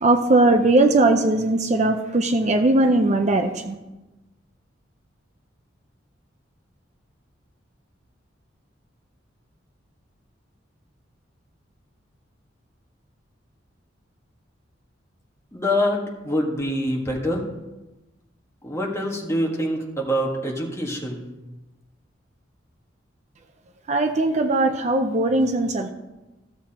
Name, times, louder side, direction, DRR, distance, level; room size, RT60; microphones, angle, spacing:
voice 1, 0.0-3.7 23.9-25.9, right 2 dB, 35° right, 6 dB, 0.5 m, -19 dB
voice 2, 15.5-16.0 16.2-17.4 18.6-21.2, equal, 15° left, -1 dB, 1.5 m, -25 dB
15.0 x 7.3 x 2.9 m, 1.1 s
head